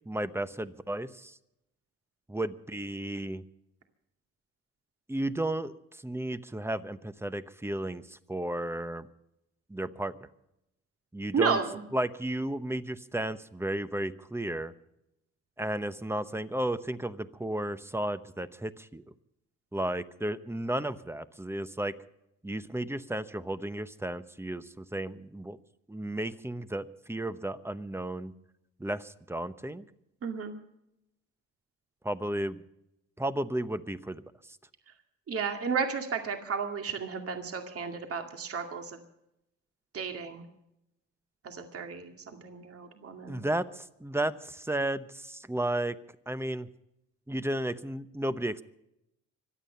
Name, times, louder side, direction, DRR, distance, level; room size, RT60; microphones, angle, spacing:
voice 1, 0.1-1.4 2.3-3.4 5.1-5.7 6.0-9.1 9.7-10.1 11.1-11.6 11.9-14.7 15.6-19.0 19.7-22.0 22.4-25.6 25.9-28.3 28.8-29.9 32.0-32.6 33.2-34.2 43.3-46.0 46.3-46.7 47.3-48.6, right 1 dB, 10° right, 13 dB, 0.9 m, -33 dB
voice 2, 11.3-11.8 30.2-30.5 35.3-39.0 39.9-40.4 41.4-43.4, right 5 dB, 50° right, 5 dB, 2.2 m, -33 dB
25.0 x 9.1 x 5.6 m, 0.82 s
cardioid pair, 90°, 30 cm